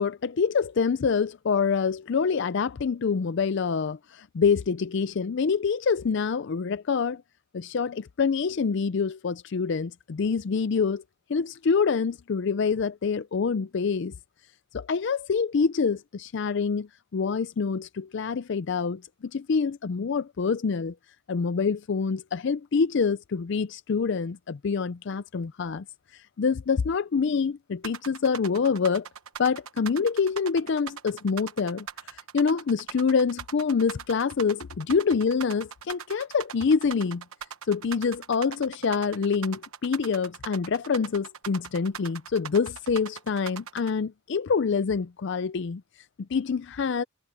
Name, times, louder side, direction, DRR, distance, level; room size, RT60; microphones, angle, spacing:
voice 1, 0.0-7.2 7.5-11.0 11.3-14.1 14.7-19.0 19.3-20.9 21.3-25.8 26.1-29.1 29.4-37.2 37.7-45.8 46.3-47.0, left 5 dB, 55° left, 0.4 m, -26 dB
sound 1, 27.8-43.9, right 7 dB, 80° right, 1.1 m, -40 dB
head